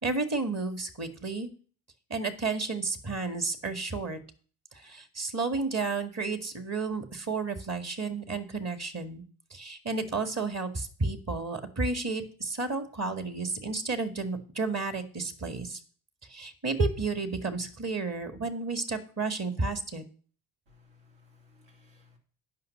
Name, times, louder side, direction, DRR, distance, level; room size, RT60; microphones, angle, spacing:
voice 1, 0.0-1.5 2.1-4.2 4.7-9.2 9.5-15.8 16.3-20.0, right 3 dB, 35° right, 8 dB, 2.0 m, -32 dB
voice 2, 20.7-22.2, left 4 dB, 65° right, 1 dB, 3.2 m, -60 dB
9.5 x 5.8 x 6.6 m, 0.43 s
hypercardioid pair, 55°, 46 cm